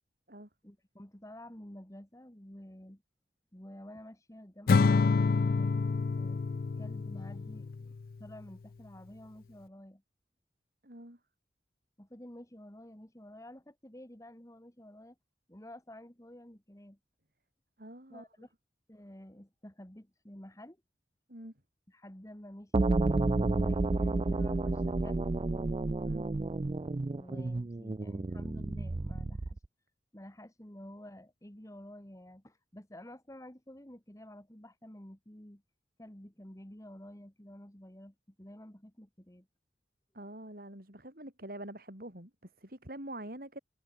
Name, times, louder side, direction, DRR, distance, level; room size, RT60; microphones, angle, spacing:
voice 1, 0.6-3.0 3.5-5.8 6.1-6.4 6.8-7.9 8.2-10.0 12.0-15.2 15.5-17.0 18.1-18.5 18.9-20.8 21.9-25.3 27.1-29.6 30.1-35.6 36.0-39.5, left 1 dB, 20° left, 2.1 m, -50 dB
Acoustic guitar / Strum, 4.7-8.0, left 4 dB, 55° left, 0.4 m, -27 dB
voice 2, 10.8-11.2 17.8-18.2 21.3-21.5 26.0-26.3 40.1-43.6, right 1 dB, 55° right, 6.9 m, -45 dB
sound 1, 22.7-29.6, right 2 dB, 30° right, 0.4 m, -31 dB
head